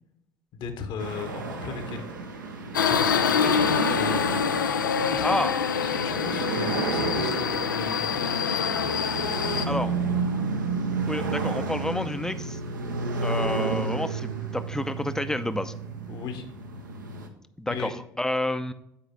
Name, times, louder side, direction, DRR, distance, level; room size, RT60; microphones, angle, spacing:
voice 1, 0.5-2.1 2.8-4.7 5.1-5.4 5.8-8.1 16.1-16.4 17.7-17.9, left 5 dB, 50° left, 8 dB, 1.1 m, -36 dB
sound 1, 1.0-17.3, right 4 dB, 80° right, 0.8 m, -31 dB
Subway metro underground, 2.7-9.7, left 7 dB, 80° left, 0.4 m, -25 dB
voice 2, 5.2-5.5 6.4-6.5 9.7-9.9 11.1-12.6 13.2-15.7 17.6-18.7, left 1 dB, 5° left, 11 dB, 0.5 m, -29 dB
8.4 x 4.8 x 4.5 m, 0.83 s
figure-of-eight pair, 60°, 10 cm